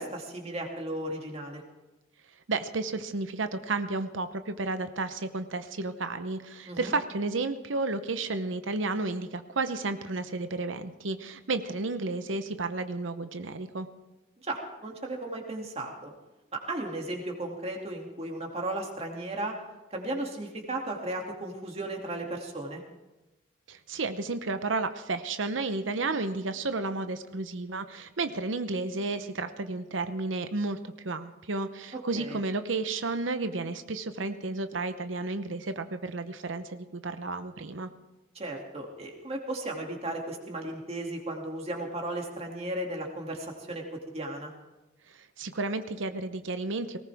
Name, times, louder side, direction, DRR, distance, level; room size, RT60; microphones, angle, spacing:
voice 1, 0.0-1.6 6.7-6.9 14.4-16.1 16.5-19.6 19.9-22.8 31.9-32.4 38.3-44.5, right 1 dB, 30° right, 1 dB, 2.5 m, -35 dB
voice 2, 2.5-13.9 23.7-30.8 31.0-37.9 45.1-47.0, right 3 dB, 85° right, 10 dB, 0.8 m, -32 dB
19.0 x 18.0 x 3.5 m, 1.0 s
head